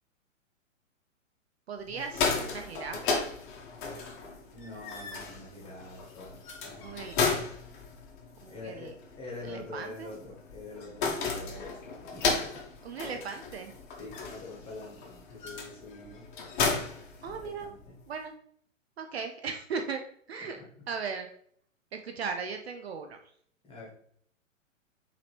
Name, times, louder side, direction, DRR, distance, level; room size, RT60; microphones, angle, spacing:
voice 1, 1.7-3.3 6.8-7.2 8.4-8.9 9.4-10.2 12.8-13.7 17.2-17.7 18.1-18.3 19.0-20.0 20.3-21.3 21.9-23.2, right 5 dB, 55° right, 5 dB, 0.5 m, -37 dB
sound 1, 1.9-17.8, left 4 dB, 40° left, 1.0 m, -34 dB
voice 2, 4.5-7.4 8.5-12.6 14.0-16.3 17.3-18.0 20.4-20.6 23.6-23.9, left 2 dB, 15° left, -3 dB, 1.3 m, -45 dB
4.8 x 3.0 x 3.2 m, 0.64 s
figure-of-eight pair, 115°, 39 cm